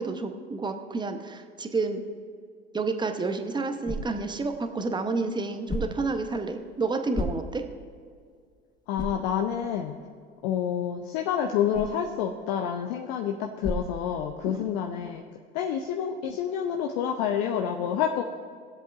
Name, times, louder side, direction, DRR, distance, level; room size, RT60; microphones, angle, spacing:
voice 1, 0.0-2.0 2.7-7.6 14.5-14.6, right 3 dB, 15° right, 7 dB, 0.9 m, -30 dB
sound 1, 3.0-14.7, left 1 dB, 10° left, 1.1 m, -40 dB
voice 2, 8.9-10.0 10.4-15.2 15.5-18.2, left 8 dB, 55° left, 3 dB, 0.7 m, -28 dB
20.0 x 7.8 x 2.5 m, 2.1 s
figure-of-eight pair, 65°, 33 cm